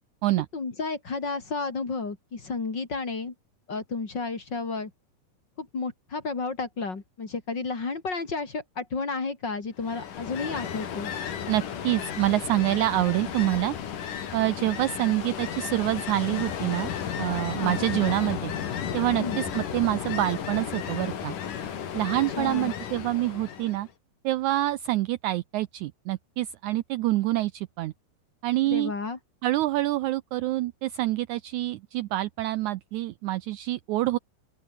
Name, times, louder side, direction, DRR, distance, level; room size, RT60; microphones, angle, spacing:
voice 1, 0.5-3.3 3.7-4.9 5.6-11.1 17.6-17.8 19.2-19.4 22.4-22.7 28.6-29.2, left 4 dB, 35° left, 3.2 m, -32 dB
Ocean, 9.8-23.9, left 8 dB, 70° left, 4.0 m, -34 dB
voice 2, 11.5-13.8 14.3-16.9 17.2-18.5 18.9-21.4 21.9-23.9 24.2-27.9 28.4-28.9 29.4-34.2, right 16 dB, 75° right, 1.8 m, -26 dB
open air
omnidirectional pair, 4.0 m